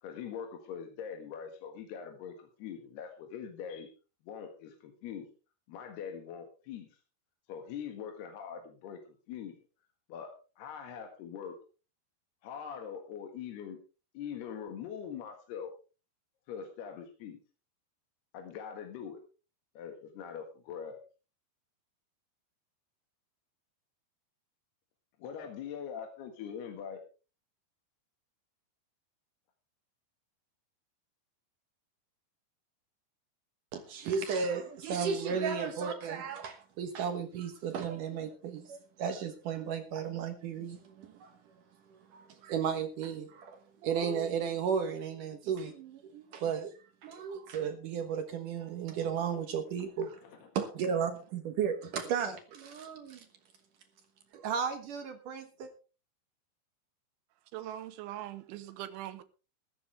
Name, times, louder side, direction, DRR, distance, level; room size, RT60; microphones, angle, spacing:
voice 1, 0.0-3.9 4.2-5.3 5.7-6.9 7.5-9.0 9.3-9.5 10.1-11.5 12.4-13.8 14.1-15.7 16.5-17.4 18.3-19.2 19.7-21.0 25.2-27.0 50.2-50.4, left 7 dB, 65° left, 3.5 m, -42 dB
voice 2, 33.7-41.3 42.1-50.2 50.6-53.3 54.3-55.7, right 7 dB, 70° right, 2.0 m, -34 dB
voice 3, 57.5-59.2, right 13 dB, 90° right, 3.5 m, -41 dB
14.5 x 14.5 x 3.4 m
omnidirectional pair, 5.4 m